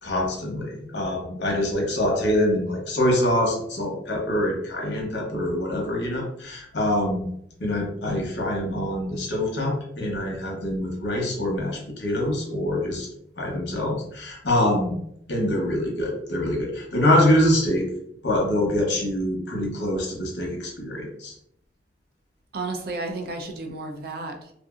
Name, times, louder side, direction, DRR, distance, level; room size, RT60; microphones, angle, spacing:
voice 1, 0.0-7.3 7.6-13.1 13.4-15.0 15.3-17.9 18.2-21.3, left 1 dB, 80° left, -1 dB, 0.9 m, -25 dB
voice 2, 22.5-24.5, right 3 dB, 55° right, 4 dB, 0.4 m, -32 dB
2.6 x 2.5 x 2.4 m, 0.71 s
head